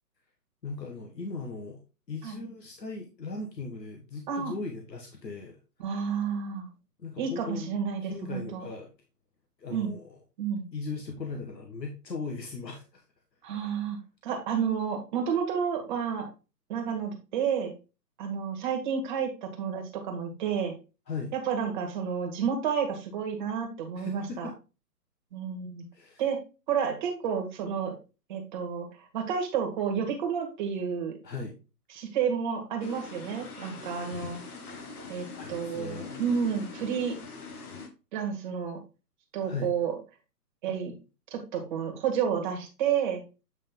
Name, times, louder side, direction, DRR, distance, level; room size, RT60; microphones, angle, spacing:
voice 1, 0.6-1.8 2.1-5.6 7.0-7.7 8.0-8.9 9.6-10.2 10.7-13.0 13.5-13.6 21.1-21.3 23.9-24.5 25.9-26.2 31.2-31.6 34.3-34.6 35.3-36.2 39.4-39.7, left 4 dB, 85° left, 2 dB, 1.4 m, -38 dB
voice 2, 5.8-6.7 7.2-8.6 9.7-9.9 10.4-10.7 13.4-14.0 14.2-16.3 16.7-17.7 18.2-20.7 21.3-24.5 25.3-25.8 26.2-26.4 26.7-27.9 28.3-31.2 31.9-34.4 35.1-37.2 38.1-38.8 39.3-40.0 40.6-40.9 41.3-43.2, right 7 dB, 30° right, 3 dB, 1.5 m, -30 dB
sound 1, 32.8-37.9, left 4 dB, 60° left, 1.7 m, -42 dB
8.3 x 3.7 x 3.7 m, 0.30 s
hypercardioid pair, 145°, 49 cm